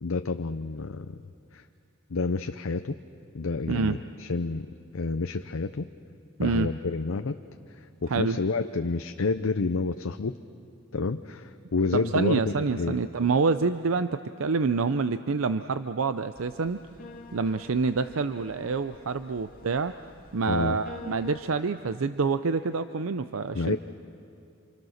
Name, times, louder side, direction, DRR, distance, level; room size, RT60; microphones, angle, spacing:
voice 1, 0.0-1.2 1.5-1.6 2.1-3.0 3.3-4.7 4.9-5.8 6.4-7.4 7.7-10.4 10.9-13.0 20.5-20.8 23.5-23.8, left 3 dB, 75° left, 8 dB, 0.6 m, -29 dB
voice 2, 3.7-4.0 6.4-6.7 8.1-8.4 11.9-16.8 17.3-19.9 20.3-23.8, right 4 dB, 75° right, 11 dB, 0.6 m, -27 dB
sound 1, 16.3-21.4, left 3 dB, 45° left, 2.2 m, -47 dB
28.5 x 27.0 x 6.5 m, 2.5 s
head